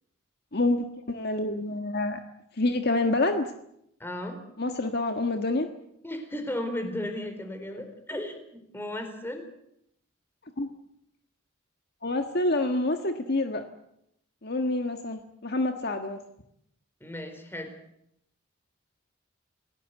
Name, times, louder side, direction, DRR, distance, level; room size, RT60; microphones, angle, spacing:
voice 1, 0.5-2.2 2.6-3.5 4.6-5.7 10.6-10.7 12.0-13.6 14.4-16.2, left 2 dB, 50° left, 6 dB, 1.6 m, -27 dB
voice 2, 4.0-4.4 6.0-9.5 17.0-17.7, left 1 dB, 10° left, 7 dB, 4.3 m, -35 dB
28.5 x 18.0 x 8.3 m, 0.78 s
head